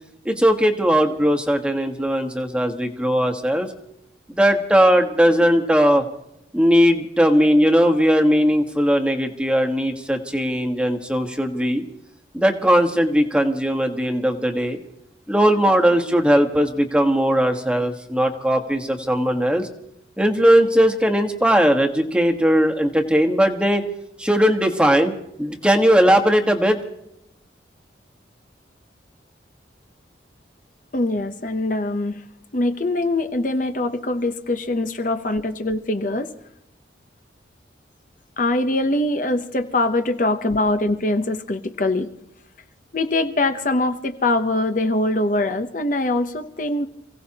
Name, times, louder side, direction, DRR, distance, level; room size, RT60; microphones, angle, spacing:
voice 1, 0.2-3.7 4.3-6.0 6.5-11.8 12.3-14.8 15.3-19.7 20.2-23.8 24.2-25.1 25.4-26.8, equal, 5° right, 3 dB, 1.3 m, -18 dB
voice 2, 30.9-32.2 32.5-36.3 38.4-42.1 42.9-46.9, left 2 dB, 45° left, 7 dB, 0.8 m, -23 dB
28.5 x 17.0 x 2.9 m, 0.79 s
head